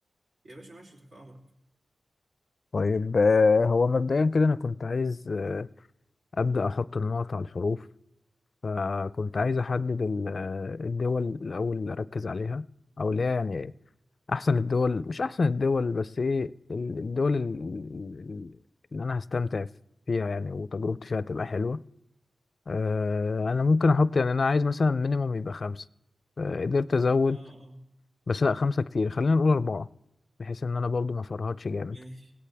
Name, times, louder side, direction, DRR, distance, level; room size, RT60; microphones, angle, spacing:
voice 1, 0.4-1.4 27.2-27.9 31.8-32.3, right 1 dB, 75° right, 3.3 m, -48 dB
voice 2, 2.7-5.7 6.4-7.8 8.6-12.6 13.0-13.7 14.3-18.6 18.9-19.7 20.1-21.8 22.7-25.8 26.4-27.4 28.3-29.9 30.4-32.0, left 4 dB, 60° left, 0.4 m, -26 dB
18.0 x 17.0 x 3.4 m
cardioid pair, 45°, 0 cm